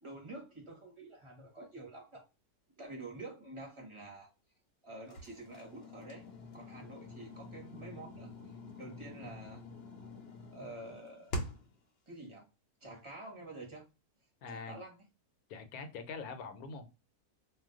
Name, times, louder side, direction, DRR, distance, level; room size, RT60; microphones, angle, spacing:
voice 1, 0.0-2.2 2.8-4.3 4.8-6.2 6.5-8.3 8.8-9.6 10.5-11.4 12.1-12.5 12.8-13.8 14.5-15.0, right 2 dB, 25° right, 0.7 m, -48 dB
sound 1, 5.1-11.8, left 1 dB, 55° left, 0.7 m, -45 dB
voice 2, 14.4-14.8 15.5-16.9, left 4 dB, 75° left, 1.0 m, -44 dB
2.4 x 2.2 x 3.5 m
omnidirectional pair, 1.6 m